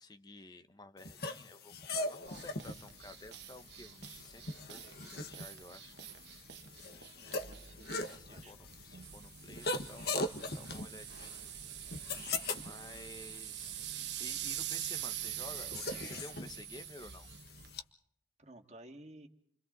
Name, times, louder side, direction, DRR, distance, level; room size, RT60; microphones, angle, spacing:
voice 1, 0.0-4.4 4.7-6.1 8.0-11.3 12.6-13.8 14.2-17.3, left 2 dB, 20° left, 0.9 m, -52 dB
sound 1, 1.0-17.8, left 2 dB, 55° left, 1.6 m, -42 dB
sound 2, 2.2-17.8, right 11 dB, 65° right, 1.2 m, -45 dB
voice 2, 7.2-8.6 18.4-19.3, right 1 dB, 35° right, 2.3 m, -55 dB
30.0 x 25.0 x 4.1 m
head